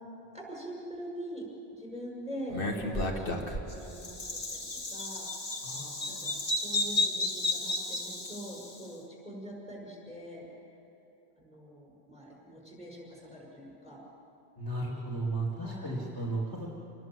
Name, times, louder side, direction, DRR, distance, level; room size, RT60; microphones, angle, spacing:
voice 1, 0.3-1.4 1.7-4.6 4.9-5.3 6.1-10.4 11.4-14.0 15.6-16.0, equal, 5° right, -3 dB, 6.2 m, -43 dB
Bird vocalization bird call bird song, 2.5-8.8, left 2 dB, 55° left, 2.0 m, -33 dB
voice 2, 5.6-6.4 14.6-16.7, right 2 dB, 20° left, -4 dB, 2.6 m, -35 dB
27.5 x 19.5 x 7.7 m, 2.9 s
omnidirectional pair, 1.1 m